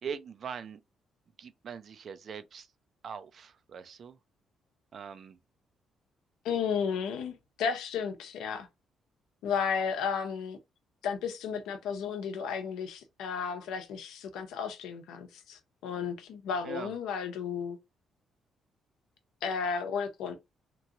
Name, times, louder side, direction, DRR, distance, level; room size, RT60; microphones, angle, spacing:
voice 1, 0.0-0.8 1.4-2.7 3.0-4.2 4.9-5.4 16.6-16.9, right 7 dB, 55° right, 0.4 m, -41 dB
voice 2, 6.4-8.7 9.4-10.6 11.0-17.8 19.4-20.4, left 6 dB, 90° left, 0.7 m, -33 dB
3.0 x 2.5 x 2.9 m
cardioid pair, 90°, 0 cm